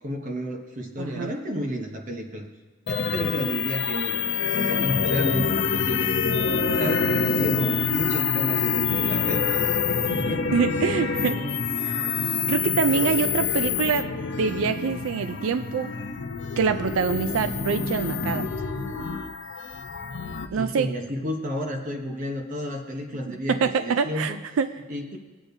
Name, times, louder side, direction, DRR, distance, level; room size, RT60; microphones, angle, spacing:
voice 1, 0.0-2.5 2.9-6.1 6.7-9.4 9.9-10.6 12.9-13.2 20.5-24.4 24.9-25.2, equal, 40° right, 2 dB, 0.9 m, -31 dB
voice 2, 1.0-1.3 10.5-11.4 11.8-12.0 12.5-14.1 14.4-15.9 16.6-18.5 20.5-20.9 23.3-24.7, right 6 dB, 70° right, 10 dB, 0.3 m, -25 dB
sound 1, 2.9-20.5, left 6 dB, 55° left, 0.6 m, -26 dB
18.0 x 8.6 x 2.7 m, 1.3 s
head